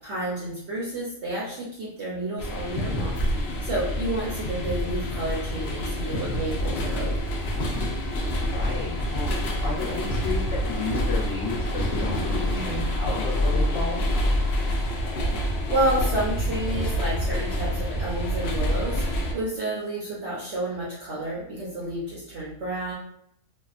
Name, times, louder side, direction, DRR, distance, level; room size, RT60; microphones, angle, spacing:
voice 1, 0.0-7.1 12.5-12.9 15.7-22.9, right 1 dB, 60° right, -6 dB, 0.8 m, -30 dB
sound 1, 2.4-19.3, equal, 85° left, 0.5 m, -27 dB
voice 2, 8.5-14.0, left 4 dB, 55° left, -5 dB, 0.9 m, -33 dB
2.7 x 2.2 x 2.4 m, 0.72 s
omnidirectional pair, 1.7 m